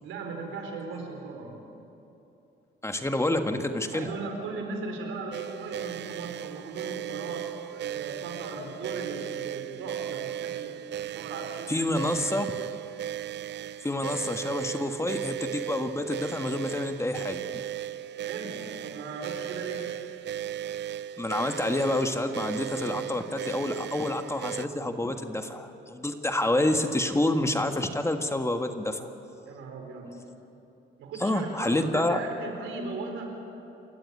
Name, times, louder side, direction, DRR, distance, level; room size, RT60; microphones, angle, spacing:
voice 1, 0.0-1.6 3.9-10.8 11.1-11.9 12.2-12.4 18.2-20.0 29.5-30.2 31.0-33.4, right 3 dB, 85° right, 3 dB, 4.4 m, -38 dB
voice 2, 2.8-4.1 11.7-12.5 13.8-17.4 21.2-29.1 31.2-32.2, left 1 dB, 15° left, 6 dB, 1.6 m, -28 dB
sound 1, 5.3-24.7, right 11 dB, 60° right, 0.6 m, -36 dB
28.0 x 14.0 x 9.7 m, 2.8 s
cardioid pair, 90°, 20 cm